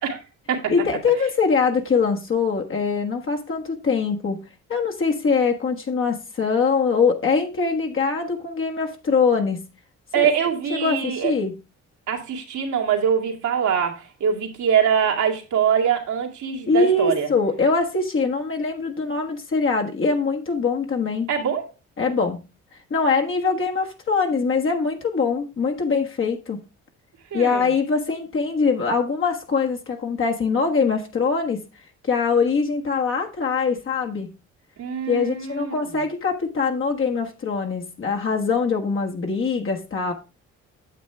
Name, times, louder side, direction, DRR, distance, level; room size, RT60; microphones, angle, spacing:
voice 1, 0.7-4.4 4.7-9.6 10.1-10.3 10.7-11.5 16.7-21.3 22.0-22.4 22.9-26.6 27.3-31.6 32.0-34.3 35.1-40.1, left 4 dB, 45° left, 1.4 m, -23 dB
voice 2, 10.1-11.3 12.1-17.3 21.3-21.7 27.3-27.7 34.8-35.7, right 7 dB, 75° right, 2.3 m, -23 dB
9.1 x 7.2 x 3.3 m
cardioid pair, 90°, 30 cm